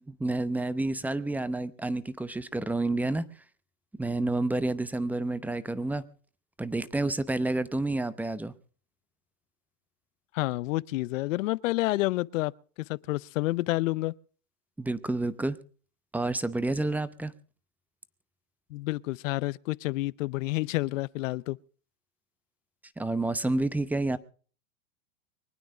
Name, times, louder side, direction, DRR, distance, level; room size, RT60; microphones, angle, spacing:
voice 1, 0.1-3.2 4.0-6.0 6.6-8.5 14.8-15.6 16.1-17.3 23.0-24.2, right 2 dB, 5° right, 0.8 m, -29 dB
voice 2, 10.3-12.5 12.9-14.1 18.7-21.6, left 19 dB, 75° left, 0.7 m, -29 dB
24.0 x 9.4 x 5.0 m
supercardioid pair, 120°, 39 cm